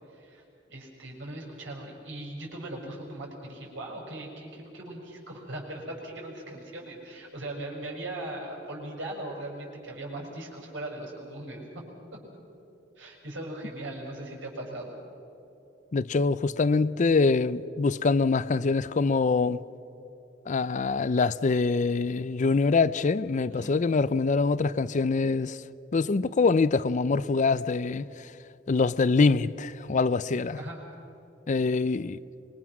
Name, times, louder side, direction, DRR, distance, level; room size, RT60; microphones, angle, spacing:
voice 1, 0.1-0.4 0.7-11.8 13.0-14.9 23.5-23.7 30.6-30.8, right 1 dB, 75° right, 5.8 m, -39 dB
voice 2, 15.9-19.6 20.5-25.6 25.9-28.1 28.7-30.6 31.5-32.2, left 4 dB, 40° left, 0.5 m, -24 dB
25.0 x 23.0 x 6.1 m
head